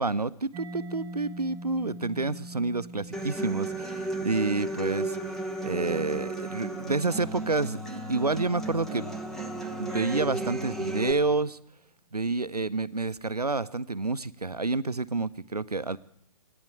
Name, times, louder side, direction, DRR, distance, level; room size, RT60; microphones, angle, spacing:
voice 1, 0.0-3.7 4.2-5.2 5.6-9.1 9.8-11.6 12.1-16.0, right 3 dB, 90° right, 16 dB, 0.6 m, -29 dB
Mallet percussion, 0.5-8.0, right 1 dB, 25° right, 1.4 m, -45 dB
Human voice / Acoustic guitar, 3.1-11.1, right 2 dB, ahead, 0.9 m, -34 dB
13.0 x 9.6 x 8.2 m, 0.72 s
figure-of-eight pair, 125°, 19 cm